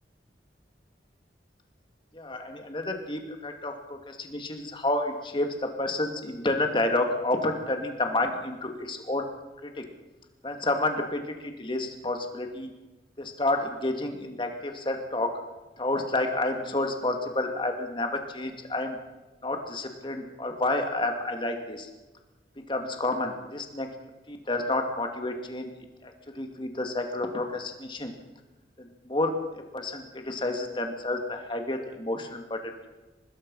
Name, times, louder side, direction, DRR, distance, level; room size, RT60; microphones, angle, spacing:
voice 1, 2.1-9.3 9.6-9.9 10.4-12.7 13.2-15.3 15.8-19.0 19.4-21.9 22.7-23.9 24.3-25.7 26.0-28.1 28.8-32.9, left 2 dB, 30° left, 4 dB, 2.5 m, -30 dB
25.0 x 19.5 x 5.6 m, 1.1 s
head